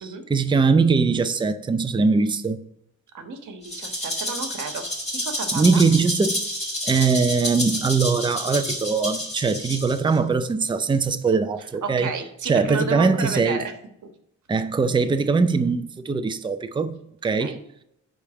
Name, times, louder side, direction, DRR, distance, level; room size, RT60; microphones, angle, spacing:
voice 1, 0.0-2.6 5.5-6.4 6.8-12.1 12.4-13.6 14.5-17.6, right 4 dB, 15° right, 0.5 m, -21 dB
voice 2, 3.1-4.8 5.2-5.8 11.6-13.7 17.4-17.6, right 4 dB, 70° right, 1.4 m, -32 dB
Rattle (instrument), 3.6-10.2, equal, 20° left, 2.0 m, -29 dB
10.0 x 3.5 x 7.1 m
wide cardioid pair, 140°, 31 cm